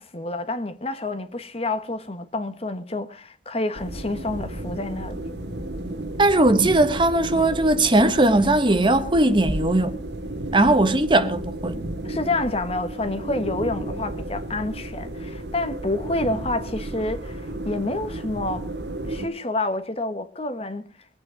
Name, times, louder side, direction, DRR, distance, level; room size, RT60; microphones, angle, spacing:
voice 1, 0.0-5.2 12.0-18.7 19.0-20.9, left 2 dB, 35° left, 1.2 m, -28 dB
sound 1, 3.7-19.3, right 1 dB, 75° right, 2.1 m, -33 dB
voice 2, 6.2-10.0 10.5-11.8, right 2 dB, 25° right, 1.1 m, -19 dB
22.5 x 8.8 x 5.1 m
head